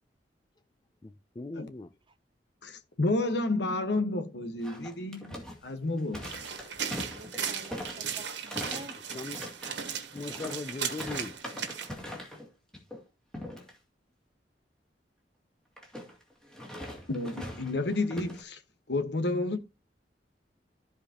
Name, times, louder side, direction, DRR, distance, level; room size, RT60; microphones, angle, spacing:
voice 1, 1.0-1.9 9.0-9.5 10.1-11.3, left 3 dB, 25° left, 0.4 m, -39 dB
voice 2, 2.6-5.4 5.6-6.2 17.1-18.6 18.9-19.6, left 2 dB, 70° left, 1.4 m, -30 dB
sound 1, 4.6-12.5 12.7-13.0 13.3-13.7 15.8-18.4, left 1 dB, 5° left, 2.2 m, -42 dB
sound 2, 6.2-11.9, right 7 dB, 90° right, 1.6 m, -37 dB
voice 3, 7.2-9.0, right 2 dB, 30° right, 0.7 m, -49 dB
14.0 x 4.9 x 2.9 m
head